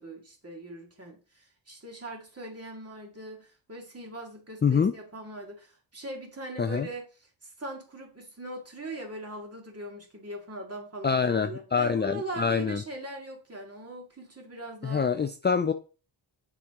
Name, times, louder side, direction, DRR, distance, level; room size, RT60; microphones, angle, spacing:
voice 1, 0.0-7.1 7.4-15.1, right 1 dB, 30° right, 1 dB, 2.2 m, -40 dB
voice 2, 4.6-4.9 6.6-6.9 11.0-12.8 14.8-15.7, left 6 dB, 25° left, 9 dB, 0.4 m, -25 dB
7.0 x 4.9 x 3.7 m, 0.35 s
wide cardioid pair, 100°, 47 cm